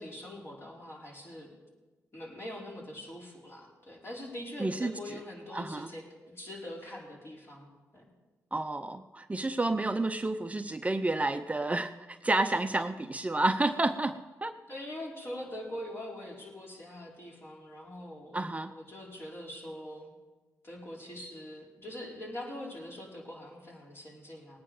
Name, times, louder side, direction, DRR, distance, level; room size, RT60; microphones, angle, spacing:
voice 1, 0.0-1.5 2.1-8.1 9.7-9.9 14.7-18.4 18.7-20.1 20.6-24.6, left 1 dB, 40° left, -3 dB, 5.0 m, -43 dB
voice 2, 4.6-4.9 5.5-5.9 8.5-14.6 18.3-18.7, right 2 dB, 20° right, 9 dB, 0.7 m, -30 dB
18.5 x 9.5 x 5.1 m, 1.2 s
supercardioid pair, 50°, 6 cm